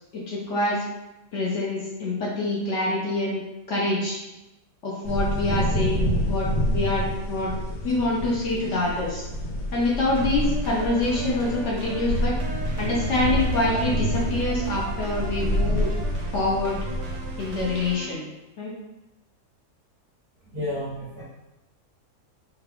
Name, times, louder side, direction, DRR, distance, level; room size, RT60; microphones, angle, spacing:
voice 1, 0.1-0.8 1.3-3.4 3.7-4.2 4.8-7.5 7.8-9.3 9.7-12.3 12.8-15.9 16.3-16.8 17.4-18.3 18.6-18.7, left 2 dB, 60° left, -5 dB, 0.8 m, -26 dB
sound 1, 5.0-17.9, equal, 85° left, 1.3 m, -28 dB
sound 2, 10.2-18.2, right 4 dB, 90° right, 1.2 m, -39 dB
voice 2, 20.5-21.2, left 1 dB, 55° right, -6 dB, 0.8 m, -31 dB
3.3 x 2.3 x 3.4 m, 0.97 s
omnidirectional pair, 1.7 m